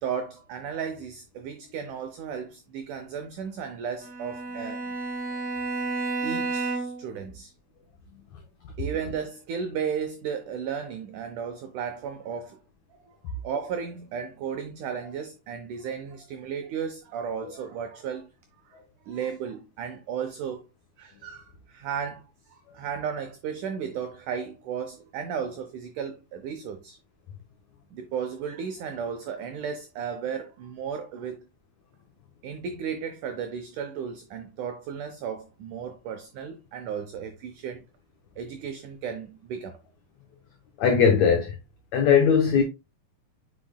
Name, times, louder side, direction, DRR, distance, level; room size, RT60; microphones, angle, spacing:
voice 1, 0.0-4.9 6.2-7.5 8.8-12.6 13.0-13.1 13.4-18.3 19.1-20.6 21.0-22.2 22.5-27.0 27.9-31.4 32.4-37.8 38.4-39.8, right 7 dB, 85° right, 1.7 m, -34 dB
Bowed string instrument, 4.0-7.1, right 3 dB, 40° right, 1.4 m, -31 dB
voice 2, 40.8-41.5 41.9-42.6, left 6 dB, 90° left, 1.6 m, -19 dB
8.5 x 5.1 x 2.2 m
omnidirectional pair, 4.4 m